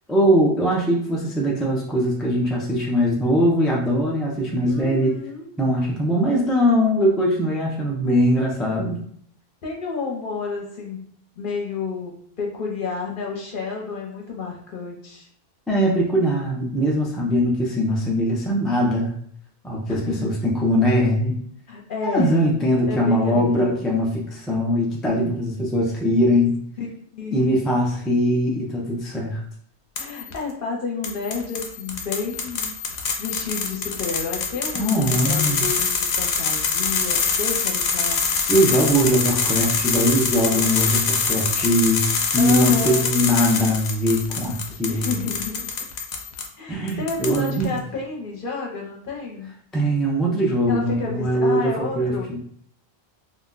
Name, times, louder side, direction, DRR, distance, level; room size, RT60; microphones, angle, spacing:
voice 1, 0.1-5.1 5.6-9.0 15.7-19.2 19.6-21.4 22.0-26.6 27.3-29.4 34.7-35.6 38.5-45.1 46.7-47.7 49.7-52.4, equal, ahead, -3 dB, 0.4 m, -21 dB
voice 2, 4.7-5.5 9.6-11.1 11.4-15.3 19.8-20.3 21.7-22.4 22.9-23.8 26.8-26.9 27.1-27.7 30.0-32.8 33.2-38.2 42.4-43.1 44.9-45.5 46.6-49.6 50.7-52.4, left 4 dB, 60° left, -1 dB, 0.8 m, -30 dB
sound 1, 30.0-30.4 31.0-46.5 46.9-47.6, left 5 dB, 85° left, 0.9 m, -25 dB
2.5 x 2.2 x 3.7 m, 0.63 s
omnidirectional pair, 1.1 m